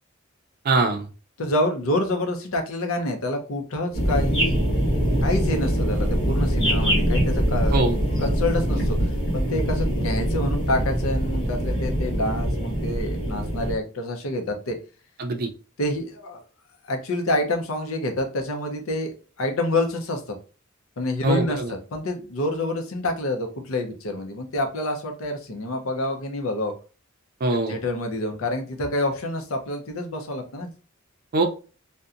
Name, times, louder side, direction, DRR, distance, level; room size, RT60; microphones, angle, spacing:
voice 1, 0.6-1.1 7.7-8.0 15.2-15.5 21.2-21.7 27.4-27.7 31.3-31.4, right 2 dB, 45° right, 5 dB, 0.4 m, -22 dB
voice 2, 1.4-4.6 5.2-7.9 8.2-14.8 15.8-16.4 16.9-20.4 21.0-26.7 27.7-30.7, left 1 dB, 80° left, 4 dB, 0.6 m, -27 dB
sound 1, 3.9-13.7, equal, 65° left, 1.3 m, -23 dB
2.7 x 2.2 x 2.4 m, 0.35 s
head